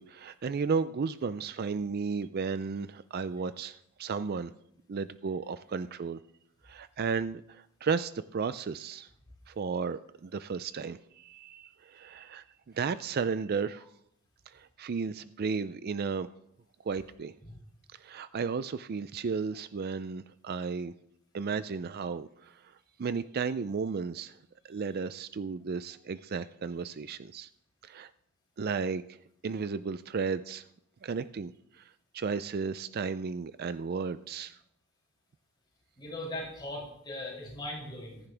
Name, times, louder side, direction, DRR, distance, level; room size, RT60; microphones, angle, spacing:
voice 1, 0.0-4.5 4.9-6.2 6.6-9.1 9.5-12.4 12.7-13.8 14.5-16.3 16.9-17.3 18.0-20.9 21.3-22.6 23.0-24.4 24.6-27.5 27.8-28.1 28.6-29.2 29.4-30.6 31.0-34.6, right 5 dB, 45° right, 14 dB, 0.4 m, -34 dB
voice 2, 36.0-38.2, left 1 dB, 20° left, -5 dB, 6.6 m, -39 dB
15.5 x 14.5 x 3.4 m, 0.75 s
head